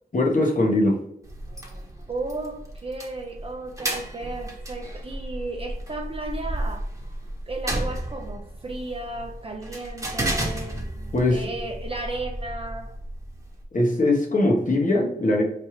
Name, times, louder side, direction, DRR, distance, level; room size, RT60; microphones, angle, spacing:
voice 1, 0.1-1.0 11.1-11.4 13.7-15.4, left 2 dB, 50° left, 0 dB, 1.1 m, -21 dB
sound 1, 1.2-13.6, right 1 dB, 20° right, 1.0 m, -33 dB
voice 2, 1.5-6.9 7.5-10.8 11.3-12.9, right 2 dB, 35° right, 2 dB, 0.5 m, -34 dB
4.4 x 3.3 x 3.0 m, 0.77 s
wide cardioid pair, 70°, 16 cm